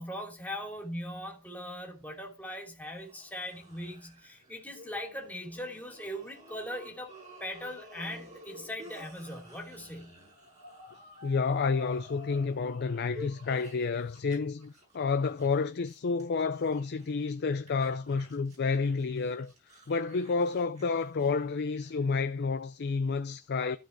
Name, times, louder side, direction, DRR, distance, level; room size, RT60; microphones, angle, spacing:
voice 1, 0.0-10.1, equal, 10° left, 2.9 m, -40 dB
sound 1, 2.8-14.4 14.6-17.3 17.7-22.2, left 1 dB, 35° right, 6.1 m, -51 dB
voice 2, 11.2-19.5 19.9-23.8, left 4 dB, 50° left, 0.5 m, -30 dB
14.5 x 4.9 x 4.4 m
head